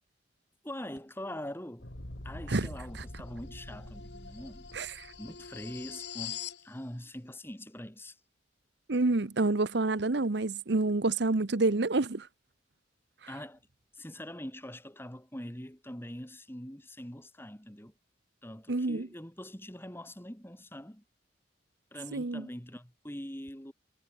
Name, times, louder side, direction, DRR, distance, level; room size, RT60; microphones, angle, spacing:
voice 1, 0.6-1.9 2.2-4.7 5.2-8.2 13.3-13.6 13.9-17.9 18.4-21.0 21.9-23.7, left 1 dB, 10° left, 3.5 m, -43 dB
sound 1, 1.8-6.6, left 5 dB, 65° left, 3.0 m, -43 dB
voice 2, 4.7-5.1 8.9-12.3 18.7-19.1 22.1-22.5, right 3 dB, 65° right, 0.9 m, -28 dB
head